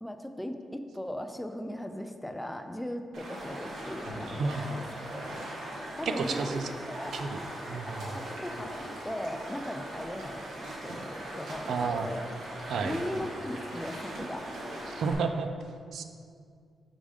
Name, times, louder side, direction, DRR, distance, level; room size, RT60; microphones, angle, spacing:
voice 1, 0.0-5.3 6.0-6.6 6.9-7.1 7.9-8.7 9.0-12.2 12.8-14.5, left 1 dB, 5° left, 7 dB, 0.3 m, -38 dB
Stream, 3.1-15.1, right 1 dB, 85° right, 1.6 m, -40 dB
voice 2, 6.1-6.7 7.1-7.4 7.7-8.1 11.7-12.1 12.7-13.0 14.9-15.5 15.9-16.0, right 5 dB, 70° right, 7 dB, 0.4 m, -31 dB
5.3 x 5.0 x 4.9 m, 2.2 s
wide cardioid pair, 150°, 0 cm